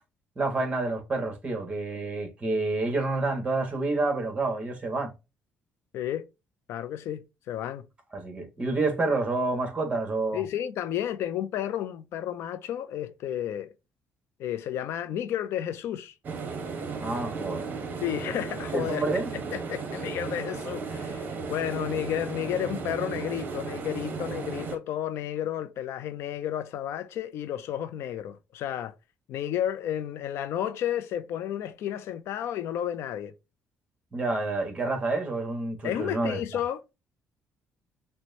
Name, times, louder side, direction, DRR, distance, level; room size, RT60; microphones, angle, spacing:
voice 1, 0.3-5.1 8.1-10.4 17.0-17.7 18.7-19.3 34.1-36.4, right 3 dB, 25° right, 1.6 m, -28 dB
voice 2, 5.9-6.3 6.7-7.8 10.3-13.7 14.4-16.1 18.0-19.0 19.5-28.9 29.3-33.3 35.8-36.9, left 10 dB, 75° left, 0.5 m, -32 dB
sound 1, 16.2-24.8, right 4 dB, 40° right, 1.1 m, -35 dB
6.0 x 2.2 x 2.7 m
cardioid pair, 110°, 4 cm